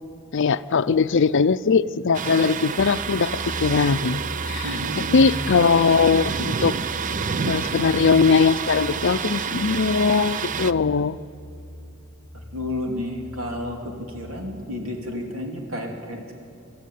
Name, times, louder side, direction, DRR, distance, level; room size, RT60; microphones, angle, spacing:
voice 1, 0.3-3.3 3.6-4.2 4.5-4.7 5.0-6.7 7.5-11.2, left 5 dB, 60° left, 14 dB, 0.5 m, -20 dB
Thunder, 2.1-10.7, right 6 dB, 40° right, 0.5 m, -29 dB
sound 1, 2.8-14.6, equal, 15° left, 4.7 m, -39 dB
voice 2, 4.6-5.3 12.5-16.3, left 1 dB, 75° right, 2 dB, 3.2 m, -31 dB
25.5 x 14.0 x 9.3 m, 2.7 s
head